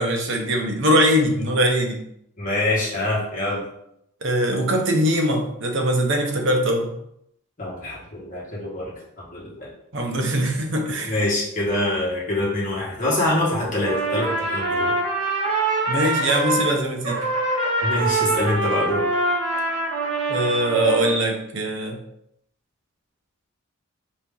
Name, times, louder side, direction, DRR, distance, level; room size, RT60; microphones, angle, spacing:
voice 1, 0.0-2.0 4.2-6.9 9.9-11.1 15.9-17.2 20.3-22.0, equal, 55° right, 2 dB, 0.7 m, -22 dB
voice 2, 2.4-3.6 7.6-9.7 11.0-14.9 17.8-19.0, left 1 dB, 35° left, -5 dB, 1.4 m, -25 dB
Trumpet, 13.8-16.7 17.0-21.2, right 2 dB, 80° right, 1.6 m, -24 dB
4.3 x 2.8 x 3.7 m, 0.75 s
head